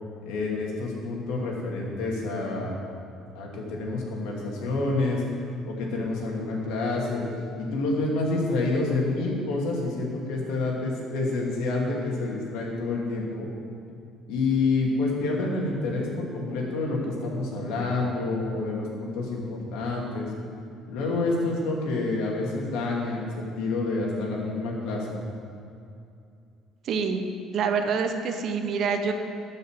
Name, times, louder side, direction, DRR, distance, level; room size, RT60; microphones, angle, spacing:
voice 1, 0.3-2.7 3.3-5.2 5.6-7.2 7.6-13.5 14.3-20.3 20.9-25.1, left 3 dB, 90° left, -2 dB, 2.4 m, -28 dB
voice 2, 26.8-27.2 27.5-29.1, right 5 dB, 55° right, 6 dB, 1.0 m, -26 dB
12.0 x 5.6 x 7.5 m, 2.5 s
cardioid pair, 115°, 0 cm